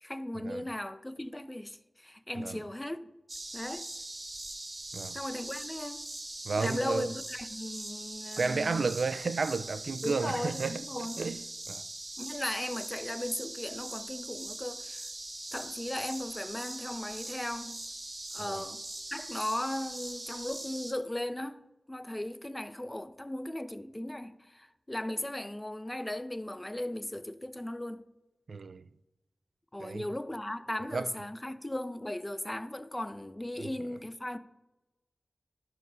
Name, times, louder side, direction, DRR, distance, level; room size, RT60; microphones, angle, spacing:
voice 1, 0.0-3.1 3.5-3.9 5.1-6.0 6.6-8.9 10.0-11.2 12.2-15.1 15.5-17.8 18.3-18.8 19.1-21.6 21.9-28.1 29.7-34.4, left 1 dB, 15° left, 0.4 m, -37 dB
sound 1, 3.3-20.9, right 2 dB, 30° right, 0.8 m, -41 dB
voice 2, 6.4-7.1 8.4-11.4 11.7-11.8 18.4-18.6 28.5-28.8 29.8-30.0 30.9-31.1 33.6-33.7, right 4 dB, 75° right, 0.3 m, -32 dB
11.5 x 4.7 x 4.9 m
wide cardioid pair, 105°, 0 cm